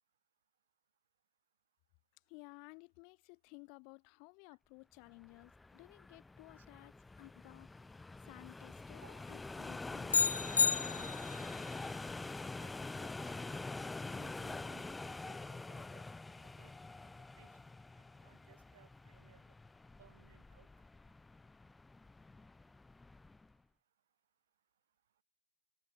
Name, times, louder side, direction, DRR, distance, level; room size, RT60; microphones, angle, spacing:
voice 1, 2.3-7.8 8.2-10.1 10.6-11.1, left 37 dB, 30° left, 3.6 m, -56 dB
sound 1, 5.2-23.5, left 3 dB, 5° left, 0.8 m, -46 dB
sound 2, 10.1-11.5, left 5 dB, 90° left, 0.5 m, -31 dB
voice 2, 12.5-17.6 18.0-19.6 20.0-20.7, right 11 dB, 50° right, 7.1 m, -64 dB
hypercardioid pair, 155°, 0 cm